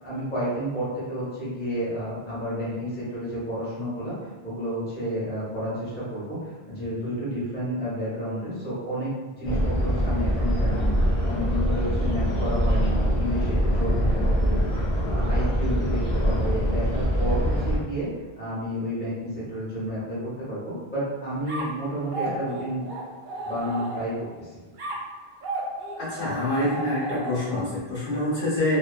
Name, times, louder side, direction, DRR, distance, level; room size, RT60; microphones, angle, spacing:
voice 1, 0.0-4.1 4.4-6.4 6.7-9.1 9.4-11.0 11.2-14.6 15.1-18.1 18.4-22.9 23.4-24.5, equal, 10° left, -9 dB, 0.8 m, -31 dB
sound 1, 9.4-17.8, equal, 40° left, 0.9 m, -23 dB
sound 2, 21.5-24.3 24.8-27.7, right 2 dB, 60° right, 0.6 m, -34 dB
voice 2, 26.0-28.8, left 1 dB, 65° left, -8 dB, 1.1 m, -26 dB
2.5 x 2.3 x 2.3 m, 1.3 s
omnidirectional pair, 1.0 m